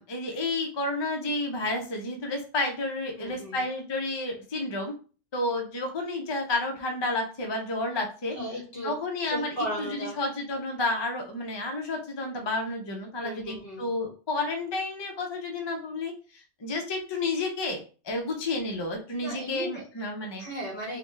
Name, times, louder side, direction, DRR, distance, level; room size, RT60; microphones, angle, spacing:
voice 1, 0.0-4.9 5.3-8.4 8.8-17.8 18.0-20.4, left 2 dB, 35° left, 2 dB, 0.4 m, -31 dB
voice 2, 3.2-3.6 8.3-9.0 9.3-10.2 13.2-13.9 19.2-19.9 20.4-21.0, equal, 55° left, -2 dB, 1.7 m, -35 dB
3.8 x 2.1 x 3.2 m, 0.37 s
omnidirectional pair, 1.2 m